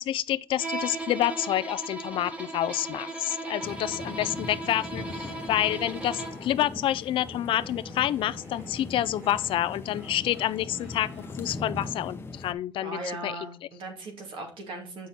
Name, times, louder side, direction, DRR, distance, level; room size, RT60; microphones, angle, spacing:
voice 1, 0.0-11.1 11.4-13.4, left 12 dB, 75° left, 0.4 m, -28 dB
Bowed string instrument, 0.6-6.5, right 2 dB, 15° right, 1.3 m, -37 dB
sound 1, 2.5-6.7 7.2-11.5, right 2 dB, 30° right, 2.7 m, -52 dB
sound 2, 3.6-12.5, left 3 dB, 25° left, 0.9 m, -40 dB
voice 2, 12.8-15.1, right 2 dB, 65° right, 2.5 m, -38 dB
8.4 x 5.9 x 4.2 m
cardioid pair, 140°, 9 cm